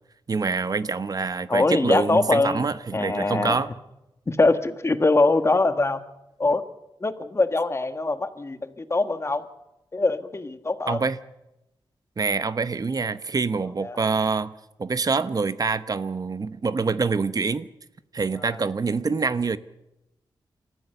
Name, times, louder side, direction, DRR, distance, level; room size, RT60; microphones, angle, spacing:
voice 1, 0.3-3.7 10.9-11.2 12.2-14.5 14.8-17.7 18.1-19.6, right 4 dB, 45° right, 13 dB, 0.9 m, -25 dB
voice 2, 1.5-2.6 2.9-3.6 4.3-6.0 6.4-6.6 7.0-9.4 9.9-11.0 13.8-14.0 18.5-18.6, left 3 dB, 30° left, 9 dB, 1.5 m, -23 dB
28.0 x 14.0 x 6.7 m, 0.93 s
wide cardioid pair, 90°, 9 cm